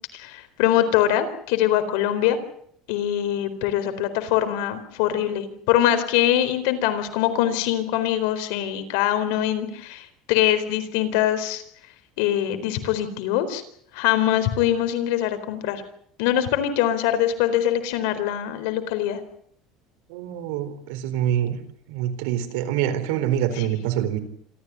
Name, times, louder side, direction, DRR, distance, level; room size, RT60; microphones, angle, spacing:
voice 1, 0.1-2.4 2.9-11.6 12.2-13.6 13.9-15.8 16.2-19.2, left 12 dB, 75° left, 10 dB, 4.2 m, -23 dB
voice 2, 20.1-21.6 21.9-24.2, right 10 dB, 90° right, 9 dB, 4.1 m, -25 dB
27.0 x 14.0 x 9.6 m, 0.65 s
cardioid pair, 170°, 0 cm